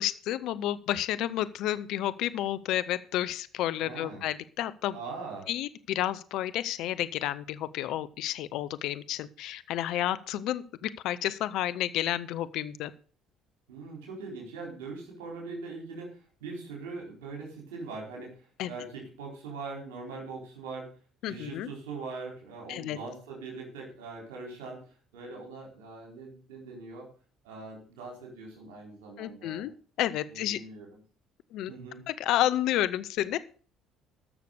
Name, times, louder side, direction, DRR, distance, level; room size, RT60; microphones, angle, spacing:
voice 1, 0.0-5.0 5.5-12.9 18.6-18.7 21.2-21.7 22.7-23.0 29.2-29.7 30.0-30.6 31.5-31.7 32.1-33.4, left 13 dB, 65° left, 14 dB, 0.6 m, -31 dB
voice 2, 3.8-4.2 4.9-5.5 13.7-18.3 18.6-20.9 21.2-24.8 25.1-27.1 27.4-29.7 30.3-30.9 31.7-32.0, right 3 dB, 80° right, 0 dB, 4.4 m, -41 dB
13.0 x 6.7 x 6.7 m, 0.40 s
hypercardioid pair, 60°, 0 cm